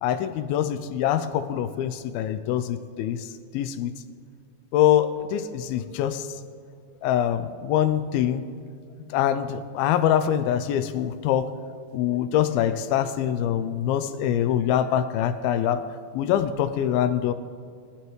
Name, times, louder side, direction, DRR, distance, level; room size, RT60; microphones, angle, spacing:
voice 1, 0.0-3.2 3.5-3.9 4.7-6.2 7.0-8.4 9.1-11.5 11.9-15.8 16.1-17.3, left 10 dB, 85° left, 11 dB, 2.4 m, -24 dB
19.0 x 14.5 x 3.2 m, 2.3 s
omnidirectional pair, 4.3 m